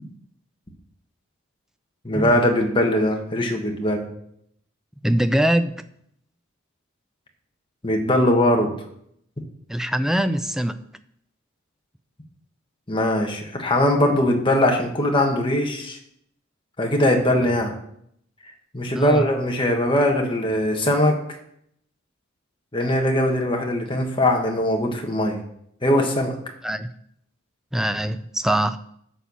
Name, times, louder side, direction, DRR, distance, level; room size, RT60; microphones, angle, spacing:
voice 1, 2.0-4.1 7.8-8.7 12.9-16.0 16.8-17.7 18.7-21.2 22.7-25.4 25.8-26.3, left 1 dB, 25° left, 2 dB, 1.5 m, -21 dB
voice 2, 5.0-5.8 9.7-10.8 19.0-19.3 26.6-26.9 27.7-28.8, right 1 dB, ahead, 11 dB, 0.4 m, -23 dB
11.5 x 4.5 x 7.1 m, 0.70 s
head